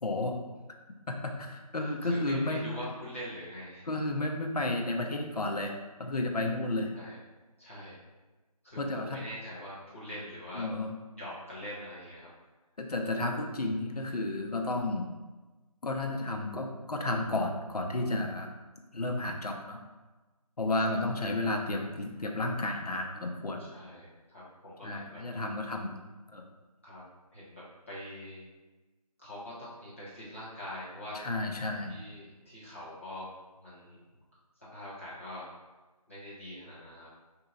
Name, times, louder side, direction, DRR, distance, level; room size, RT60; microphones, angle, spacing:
voice 1, 0.0-0.4 1.1-2.7 3.9-6.9 8.8-9.2 10.5-10.9 12.8-15.1 15.8-18.5 18.9-19.8 20.6-23.6 24.8-25.9 26.3-26.4 31.1-31.9, left 2 dB, 75° left, 2 dB, 0.7 m, -32 dB
voice 2, 1.8-3.9 6.9-7.2 7.6-8.0 8.6-10.6 11.2-12.3 20.9-21.0 23.6-25.2 26.8-27.0 27.3-28.4 29.2-31.2 31.9-33.3 33.6-34.0 34.7-35.5 36.1-37.1, equal, 20° left, -11 dB, 0.9 m, -43 dB
5.3 x 2.8 x 2.4 m, 1.2 s
figure-of-eight pair, 175°, 20 cm